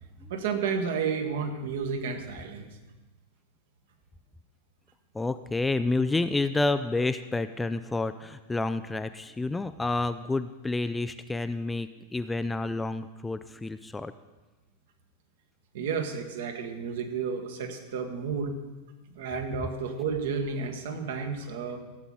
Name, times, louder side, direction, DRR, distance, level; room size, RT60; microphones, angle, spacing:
voice 1, 0.3-2.7 15.7-18.5 19.1-21.8, right 5 dB, 55° right, 4 dB, 1.5 m, -31 dB
voice 2, 5.1-14.1, left 2 dB, 10° left, 11 dB, 0.4 m, -29 dB
15.0 x 8.3 x 4.0 m, 1.2 s
figure-of-eight pair, 90°, 0 cm